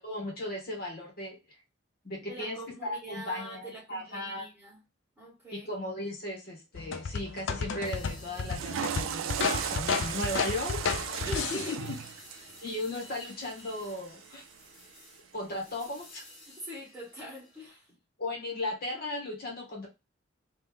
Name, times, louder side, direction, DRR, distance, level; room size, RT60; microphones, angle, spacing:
voice 1, 0.0-1.4 2.0-4.5 5.5-9.3 9.6-11.8 12.6-14.4 15.3-16.2 18.2-19.9, left 1 dB, 50° left, 1.5 m, -36 dB
voice 2, 2.2-4.8 5.2-5.7 11.2-11.9 12.4-12.6 16.5-18.0, right 1 dB, 10° right, 1.6 m, -44 dB
sound 1, 6.7-11.7, left 5 dB, 65° left, 0.4 m, -32 dB
sound 2, 7.8-17.7, left 1 dB, 35° left, 2.0 m, -53 dB
Water / Toilet flush, 8.3-14.6, right 9 dB, 85° right, 0.3 m, -37 dB
3.2 x 2.8 x 3.6 m
head